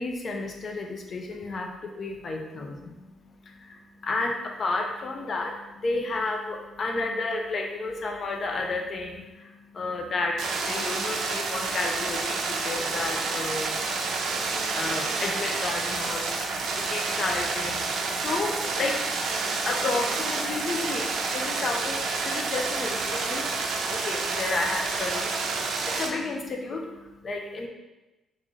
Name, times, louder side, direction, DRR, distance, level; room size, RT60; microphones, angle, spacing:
voice 1, 0.0-27.7, left 3 dB, 45° left, 2 dB, 0.6 m, -32 dB
sound 1, 10.4-26.1, right 4 dB, 75° right, 0.5 m, -29 dB
3.8 x 2.6 x 3.1 m, 1.0 s
cardioid pair, 90°, 0 cm